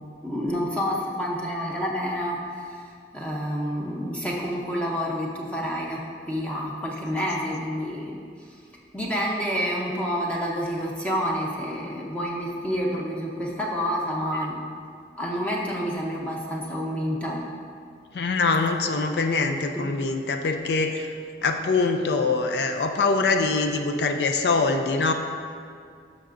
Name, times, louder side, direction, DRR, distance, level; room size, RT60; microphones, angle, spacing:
voice 1, 0.2-2.8 3.1-8.2 8.5-8.6 8.9-14.6 15.2-17.4 19.8-19.9, equal, 5° left, -3 dB, 0.7 m, -28 dB
voice 2, 18.1-21.1 21.4-25.1, left 3 dB, 65° left, 5 dB, 0.4 m, -23 dB
12.0 x 6.0 x 2.5 m, 2.2 s
head